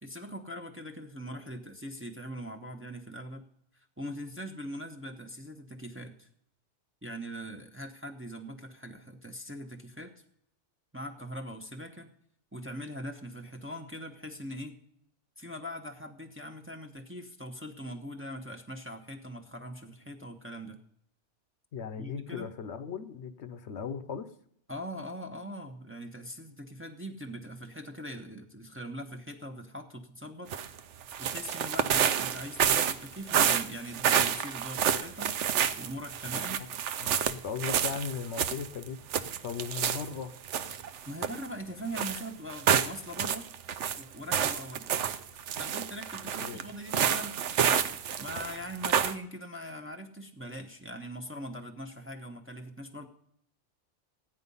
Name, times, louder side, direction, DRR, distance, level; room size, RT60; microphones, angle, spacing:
voice 1, 0.0-3.4 4.0-6.3 7.0-10.1 10.9-12.1 12.5-14.8 15.4-20.8 22.0-22.5 24.7-30.8 31.2-35.4 35.7-36.6 41.1-43.5 44.0-44.9 45.5-53.1, equal, 10° right, 3 dB, 0.9 m, -41 dB
voice 2, 21.7-24.3 36.3-36.6 37.0-39.0 39.4-40.3 46.4-46.7, left 6 dB, 70° left, 11 dB, 1.0 m, -37 dB
sound 1, 30.5-30.8 31.1-40.1 40.5-41.5 41.9-44.0 44.3-49.1, right 8 dB, 75° right, 1.0 m, -29 dB
14.5 x 9.8 x 5.5 m, 0.71 s
omnidirectional pair, 1.2 m